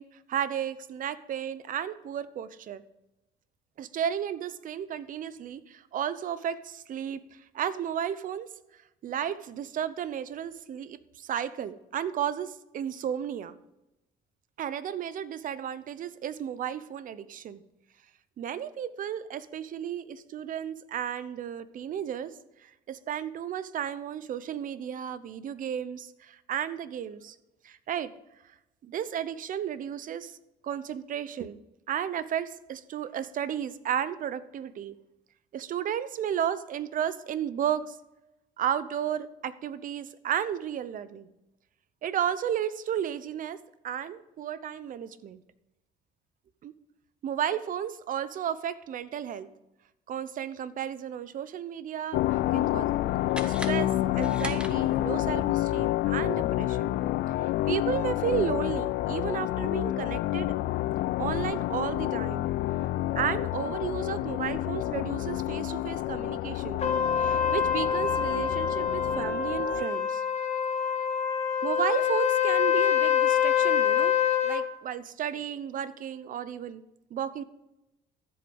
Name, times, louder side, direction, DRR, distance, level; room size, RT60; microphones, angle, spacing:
voice 1, 0.0-2.8 3.8-8.5 9.0-13.5 14.6-17.6 18.4-22.3 22.6-27.4 27.6-28.1 28.8-30.4 30.6-31.6 31.9-35.0 35.5-38.0 38.6-41.3 42.0-45.4 46.6-46.7 47.2-49.5 50.1-52.9 53.4-55.5 55.7-57.0 57.7-60.5 61.2-62.5 63.1-66.8 67.1-70.2 71.6-74.1 74.4-76.8 77.1-77.4, right 9 dB, 50° right, 15 dB, 0.8 m, -33 dB
sound 1, 52.1-69.9, left 15 dB, 75° left, 0.4 m, -29 dB
sound 2, 53.3-55.2, equal, 5° right, 1.2 m, -41 dB
Trumpet, 66.8-74.6, left 8 dB, 40° left, 1.8 m, -25 dB
13.5 x 8.0 x 5.4 m, 0.92 s
cardioid pair, 110°, 17 cm